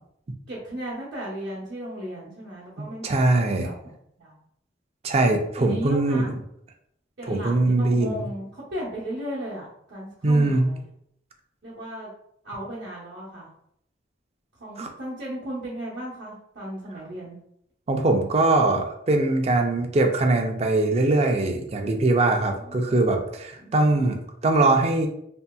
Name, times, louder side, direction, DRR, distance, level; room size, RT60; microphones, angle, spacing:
voice 1, 0.5-3.7 4.2-4.4 5.6-6.4 7.2-10.8 11.6-12.1 12.4-13.5 14.6-17.4 22.6-22.9 23.6-24.1, right 1 dB, 70° right, -10 dB, 0.9 m, -36 dB
voice 2, 2.8-3.7 5.0-6.2 7.3-8.2 10.2-10.7 14.8-14.9 17.9-24.2 24.4-25.1, right 2 dB, 35° right, 4 dB, 0.4 m, -21 dB
2.8 x 2.7 x 2.3 m, 0.73 s
head